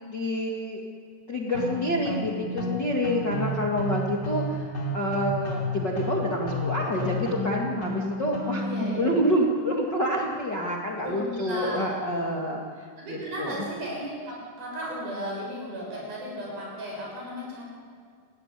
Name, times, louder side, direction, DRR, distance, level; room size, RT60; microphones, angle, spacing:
voice 1, 0.1-0.8 1.3-13.7, equal, 50° left, -1 dB, 1.2 m, -28 dB
sound 1, 1.5-8.9, left 1 dB, 15° left, 2.6 m, -31 dB
voice 2, 8.6-9.0 11.0-11.9 13.0-17.6, equal, 45° right, -3 dB, 8.2 m, -35 dB
28.5 x 14.0 x 9.9 m, 2.1 s
omnidirectional pair, 5.7 m